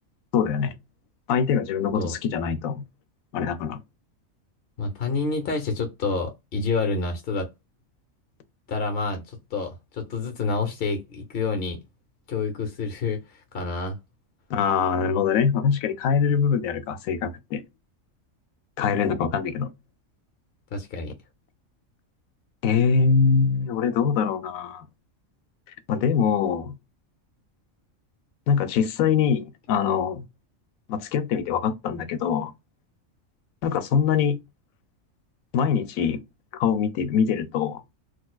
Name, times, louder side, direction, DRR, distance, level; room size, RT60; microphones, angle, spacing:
voice 1, 0.3-0.7 1.3-2.8 3.3-3.8 14.5-17.6 18.8-19.7 22.6-24.9 25.9-26.8 28.5-30.3 30.9-32.5 33.6-34.4 35.5-36.2 36.5-37.8, left 6 dB, 90° left, 1.0 m, -23 dB
voice 2, 4.8-7.5 8.7-11.8 12.3-14.0 20.7-21.1, left 4 dB, 55° left, 0.8 m, -28 dB
4.0 x 2.5 x 2.2 m
omnidirectional pair, 1.4 m